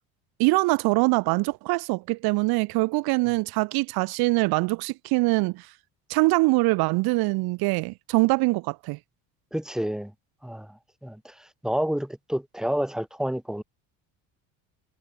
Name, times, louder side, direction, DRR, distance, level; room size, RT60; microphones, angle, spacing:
voice 1, 0.4-5.7 6.1-9.0, right 23 dB, 75° right, 1.1 m, -23 dB
voice 2, 9.5-10.1 10.4-11.3 11.6-13.6, equal, ahead, 2.9 m, -29 dB
cardioid pair, 115°, 37 cm